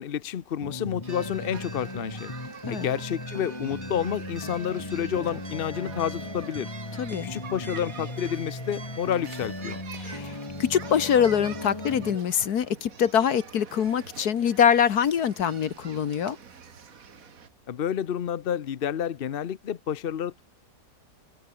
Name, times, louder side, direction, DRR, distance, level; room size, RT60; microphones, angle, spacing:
voice 1, 0.0-2.3 2.7-6.7 7.2-9.8 17.7-20.4, left 9 dB, 55° left, 0.6 m, -30 dB
sound 1, 0.6-12.2, left 2 dB, 15° left, 2.2 m, -38 dB
sound 2, 1.0-17.5, right 7 dB, 55° right, 1.9 m, -46 dB
sound 3, 1.1-9.8, right 1 dB, 35° right, 5.7 m, -45 dB
voice 2, 7.0-7.3 10.0-10.3 10.6-16.4, left 8 dB, 70° left, 1.7 m, -24 dB
open air
omnidirectional pair, 1.7 m